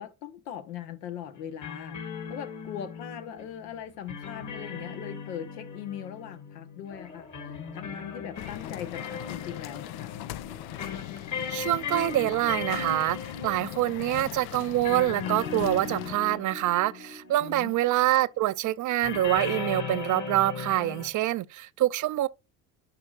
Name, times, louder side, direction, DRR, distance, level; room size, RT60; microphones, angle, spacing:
voice 1, 0.0-2.0 2.3-10.2 17.4-17.7, left 9 dB, 85° left, 1.0 m, -40 dB
sound 1, 1.3-17.7 19.0-21.1, left 5 dB, 40° left, 1.9 m, -38 dB
sound 2, 6.9-15.4 15.7-15.8 16.1-16.2, left 4 dB, 10° left, 0.9 m, -51 dB
sound 3, 8.4-16.2, left 15 dB, 55° left, 0.6 m, -40 dB
voice 2, 11.5-13.2 13.4-22.3, right 15 dB, 45° right, 0.4 m, -26 dB
10.5 x 5.0 x 2.4 m
hypercardioid pair, 70°, 46 cm